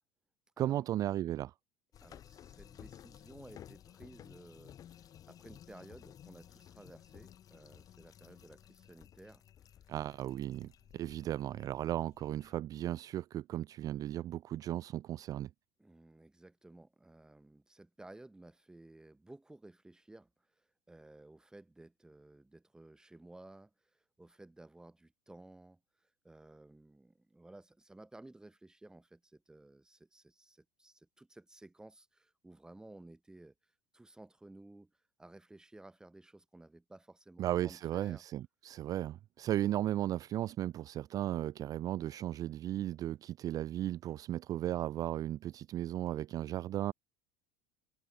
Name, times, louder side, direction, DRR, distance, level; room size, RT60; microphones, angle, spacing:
voice 1, 0.6-1.5 9.9-15.5 37.4-46.9, right 13 dB, 30° right, 0.4 m, -35 dB
sound 1, 1.9-12.6, left 10 dB, 30° left, 2.6 m, -56 dB
voice 2, 2.0-9.4 15.8-20.3 20.6-33.5 33.9-34.9 35.2-38.2, right 2 dB, 5° right, 3.7 m, -56 dB
supercardioid pair, 150°, 12 cm